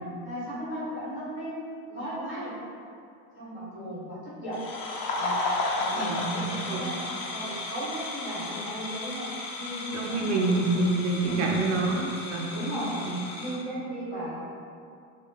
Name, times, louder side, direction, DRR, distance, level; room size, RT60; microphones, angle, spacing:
voice 1, 0.2-1.5 1.9-2.5 3.4-4.6 5.1-5.4 5.7-9.3 9.6-10.4 10.7-10.8 11.2-11.7 12.5-13.0 13.4-14.5, equal, 25° left, -9 dB, 1.1 m, -35 dB
sound 1, 4.5-13.6, left 2 dB, 70° left, 0.8 m, -34 dB
voice 2, 6.0-6.9 9.9-12.5 13.0-13.2, right 3 dB, 55° right, -1 dB, 0.5 m, -27 dB
5.4 x 2.1 x 3.2 m, 2.4 s
supercardioid pair, 175°, 43 cm